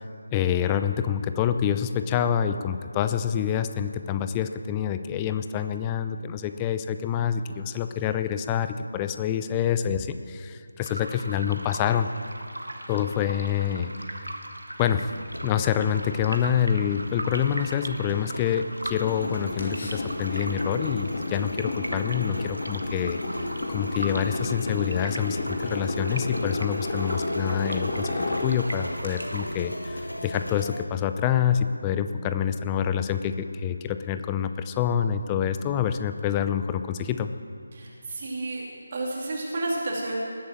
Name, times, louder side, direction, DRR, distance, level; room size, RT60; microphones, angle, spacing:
voice 1, 0.3-12.1 12.9-13.9 14.8-15.1 15.4-23.2 23.7-28.1 28.4-37.3, left 9 dB, 15° left, 9 dB, 0.5 m, -27 dB
sound 1, 10.8-29.6, right 1 dB, 75° right, 1.6 m, -39 dB
sound 2, 14.8-30.8, equal, 80° left, 1.5 m, -38 dB
sound 3, 18.9-29.2, left 2 dB, 40° left, 2.7 m, -32 dB
voice 2, 37.7-38.7 38.9-40.2, right 2 dB, 35° right, -3 dB, 2.7 m, -31 dB
20.0 x 8.4 x 7.5 m, 2.4 s
figure-of-eight pair, 155°, 0 cm